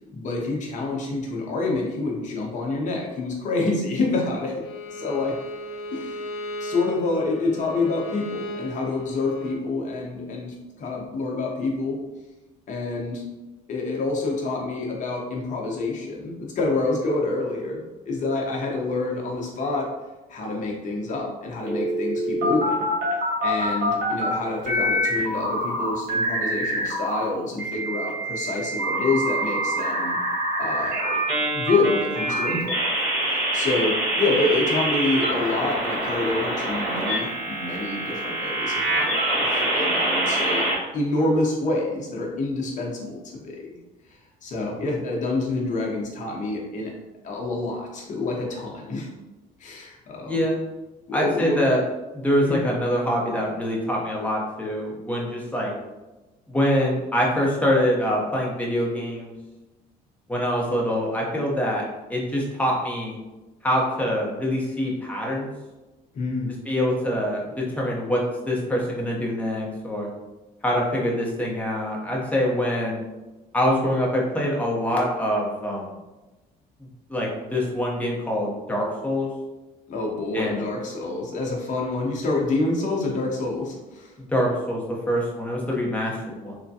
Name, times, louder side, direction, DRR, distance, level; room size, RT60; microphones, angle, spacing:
voice 1, 0.1-4.5 4.9-5.4 5.9-6.2 6.6-12.0 12.7-13.2 13.7-19.9 20.3-23.0 23.4-30.2 30.6-32.9 33.3-40.7 40.9-43.8 44.4-46.9 47.2-49.1 49.6-50.4 51.1-51.6 52.5-52.6 66.1-66.5 79.9-84.1, left 2 dB, 45° left, -2 dB, 0.8 m, -27 dB
Bowed string instrument, 4.6-9.6, equal, 80° left, 0.4 m, -36 dB
sound 1, 21.7-24.3 24.6-27.2 27.6-40.7, right 1 dB, 65° right, 1.1 m, -25 dB
voice 2, 50.2-50.6 51.1-51.8 52.1-55.7 56.5-59.3 60.3-61.8 62.1-63.2 63.6-65.5 66.6-70.1 70.6-73.0 73.5-75.9 77.1-79.3 80.3-80.7 84.2-84.8 85.1-86.5, equal, 10° left, -3 dB, 0.7 m, -24 dB
3.3 x 2.2 x 2.7 m, 1.1 s
cardioid pair, 110°, 17 cm